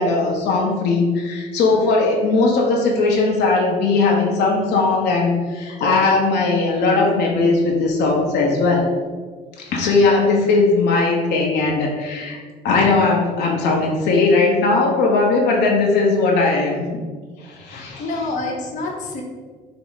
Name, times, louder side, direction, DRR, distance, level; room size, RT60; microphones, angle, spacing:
voice 1, 0.0-8.9 9.7-12.4 12.6-16.9 17.4-18.1, left 3 dB, 80° left, -1 dB, 0.7 m, -18 dB
voice 2, 17.7-19.2, left 2 dB, 50° left, 0 dB, 0.7 m, -27 dB
4.5 x 2.0 x 3.8 m, 1.5 s
cardioid pair, 110°, 17 cm